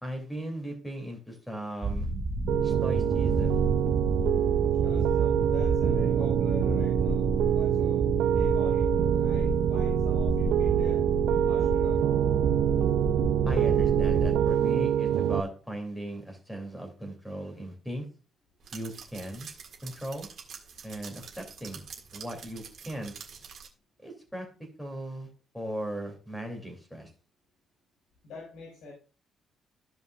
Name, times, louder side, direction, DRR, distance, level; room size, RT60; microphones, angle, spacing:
voice 1, 0.0-2.1 2.6-3.7 13.4-18.0 18.7-19.5 19.8-20.3 20.8-21.8 22.1-23.1 24.0-24.5 24.8-25.3 25.5-27.1, right 1 dB, ahead, 3 dB, 2.5 m, -37 dB
sound 1, 1.8-14.5, right 2 dB, 25° right, 1.0 m, -30 dB
Piano, 2.5-15.4, right 11 dB, 85° right, 0.4 m, -26 dB
voice 2, 4.8-11.0 11.4-12.0 28.2-28.9, left 3 dB, 75° left, -2 dB, 4.8 m, -44 dB
sound 2, 14.6-15.5 18.6-23.7, right 6 dB, 55° right, 1.8 m, -47 dB
14.5 x 5.2 x 2.3 m, 0.35 s
cardioid pair, 140°, 0 cm